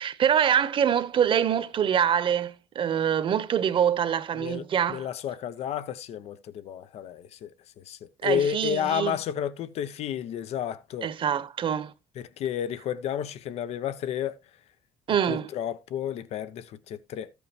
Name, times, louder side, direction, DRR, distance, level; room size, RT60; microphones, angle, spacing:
voice 1, 0.0-5.1 8.2-9.2 11.0-11.9 15.1-15.5, right 8 dB, 45° right, 1.2 m, -25 dB
voice 2, 4.9-11.1 12.2-14.4 15.3-17.3, left 9 dB, 65° left, 0.9 m, -31 dB
13.5 x 8.3 x 3.1 m
cardioid pair, 115°, 12 cm